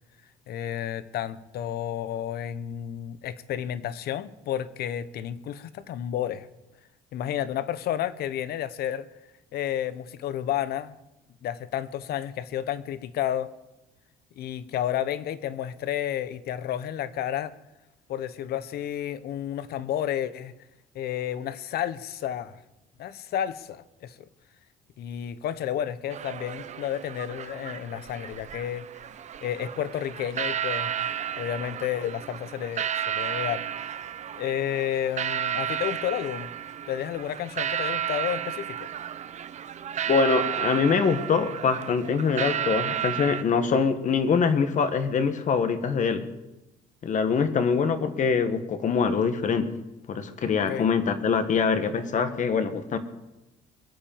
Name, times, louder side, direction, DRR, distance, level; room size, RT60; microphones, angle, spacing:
voice 1, 0.5-6.5 7.1-9.1 9.5-11.0 11.4-13.5 14.4-17.5 18.1-20.5 20.9-22.6 23.0-24.3 25.0-28.8 29.4-33.7 34.4-36.5 36.9-38.9 50.7-50.9, left 10 dB, 70° left, 15 dB, 1.0 m, -31 dB
sound 1, 26.1-43.4, right 9 dB, 45° right, 0.8 m, -32 dB
voice 2, 40.1-46.2 47.0-49.7 50.1-53.0, left 5 dB, 45° left, 9 dB, 1.7 m, -24 dB
22.5 x 8.8 x 7.2 m, 0.97 s
cardioid pair, 110°, 17 cm